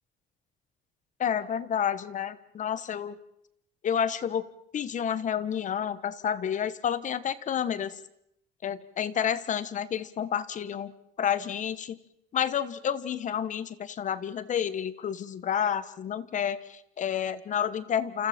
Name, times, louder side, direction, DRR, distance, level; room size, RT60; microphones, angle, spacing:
voice 1, 1.2-3.1 3.8-4.5 4.7-8.0 8.6-10.9 11.2-12.0 12.3-18.3, left 8 dB, 45° left, 14 dB, 1.3 m, -30 dB
28.5 x 27.5 x 4.4 m, 0.76 s
cardioid pair, 110°, 17 cm